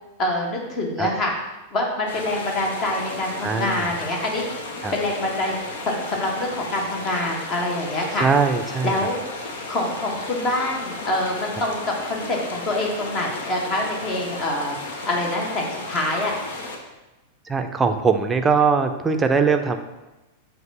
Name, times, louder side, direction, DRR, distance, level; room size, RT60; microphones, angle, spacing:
voice 1, 0.2-1.3 1.7-4.5 4.9-5.6 5.8-8.3 8.8-9.2 9.7-14.7 15.0-16.3, left 1 dB, 35° left, 0 dB, 1.5 m, -25 dB
sound 1, 2.1-16.8, left 2 dB, 60° left, 1.0 m, -34 dB
voice 2, 3.4-3.8 4.8-4.9 8.2-8.9 17.5-19.8, right 5 dB, 15° right, 6 dB, 0.6 m, -21 dB
7.7 x 2.7 x 5.6 m, 1.0 s
figure-of-eight pair, 95°, 0 cm